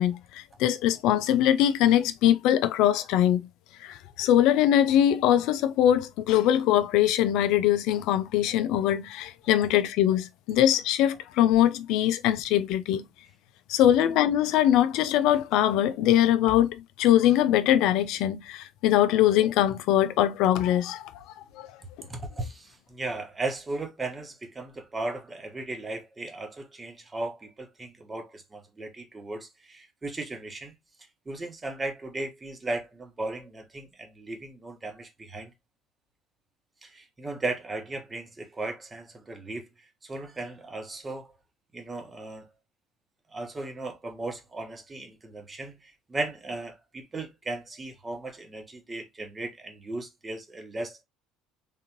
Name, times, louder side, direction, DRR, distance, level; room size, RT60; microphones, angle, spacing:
voice 1, 0.0-3.4 3.8-13.0 13.7-21.7 22.0-22.1, left 11 dB, 55° left, 0.5 m, -22 dB
voice 2, 22.1-30.7 31.3-35.5 36.8-39.7 40.0-41.3 41.7-42.5 43.3-51.0, right 2 dB, 20° right, 1.2 m, -36 dB
3.6 x 3.6 x 2.9 m
figure-of-eight pair, 60°, 0 cm